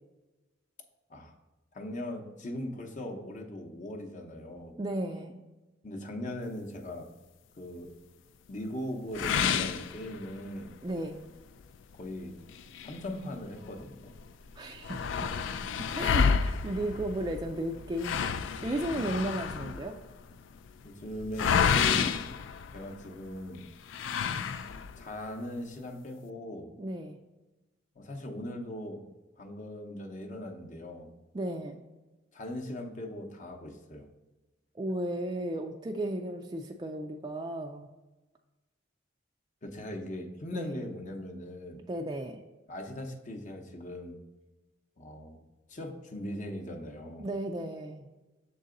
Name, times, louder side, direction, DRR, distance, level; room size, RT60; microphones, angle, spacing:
voice 1, 1.7-4.8 5.8-7.1 7.6-7.9 8.5-10.7 11.9-12.4 12.8-14.1 18.9-19.2 20.8-22.1 22.7-23.7 25.0-26.7 28.0-29.0 29.4-31.1 32.3-34.1 39.6-41.8 42.7-44.2 45.0-45.4 45.7-47.3, left 1 dB, 40° left, 2 dB, 0.8 m, -39 dB
voice 2, 4.8-5.4 10.8-11.2 14.6-15.5 15.8-18.2 18.6-20.0 21.9-22.1 26.8-27.2 31.3-31.8 34.7-37.9 40.5-40.8 41.9-42.4 47.2-48.1, right 1 dB, 20° right, 2 dB, 0.3 m, -34 dB
sound 1, 9.1-10.6 11.1-11.2 11.6-11.7 12.5-13.8 14.2-14.3 14.5-23.2 23.9-25.0, left 6 dB, 70° left, 0.3 m, -30 dB
6.6 x 4.0 x 3.8 m, 1.1 s
head